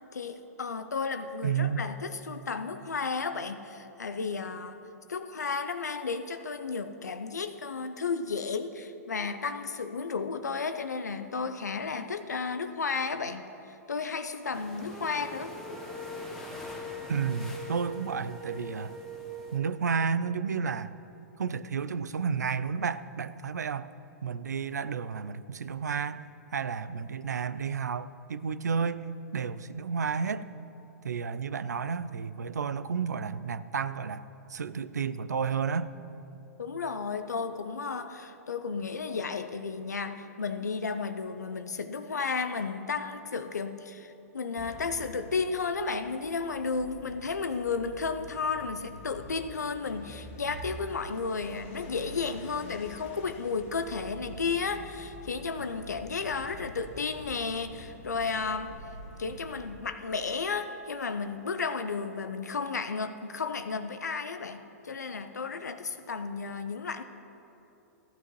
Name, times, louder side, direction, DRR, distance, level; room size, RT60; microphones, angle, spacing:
voice 1, 0.1-4.8 5.1-15.6 36.6-58.8 59.2-67.0, left 4 dB, 85° left, 10 dB, 0.5 m, -33 dB
voice 2, 1.4-1.9 17.1-19.0 19.5-21.0 21.4-23.9 24.2-30.5 31.0-35.9, right 6 dB, 85° right, 16 dB, 0.4 m, -31 dB
sound 1, 14.5-19.6, left 1 dB, 5° left, 1.3 m, -46 dB
sound 2, 14.9-19.8, right 1 dB, 25° right, 1.4 m, -42 dB
sound 3, 44.6-60.1, equal, 50° left, 1.1 m, -47 dB
14.5 x 11.0 x 3.1 m, 3.0 s
hypercardioid pair, 110°, 9 cm